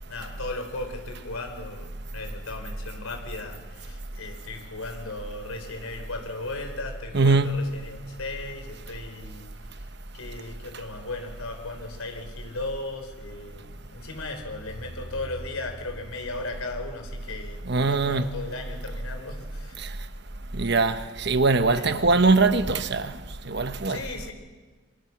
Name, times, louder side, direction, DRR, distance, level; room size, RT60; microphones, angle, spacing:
voice 1, 0.1-19.9 21.7-22.3 23.9-24.3, left 2 dB, 90° left, 4.5 m, -36 dB
voice 2, 7.1-7.7 17.7-18.4 20.5-23.1 23.5-24.0, right 3 dB, 55° right, 1.1 m, -22 dB
27.0 x 25.0 x 6.1 m
head